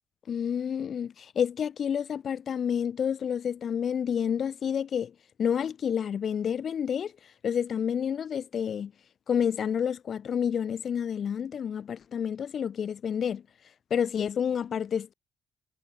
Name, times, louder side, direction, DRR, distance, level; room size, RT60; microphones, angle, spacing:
voice 1, 0.3-5.1 5.4-7.1 7.4-8.9 9.3-13.4 13.9-15.1, left 8 dB, 55° left, 1.2 m, -29 dB
cardioid pair, 90°, 0 cm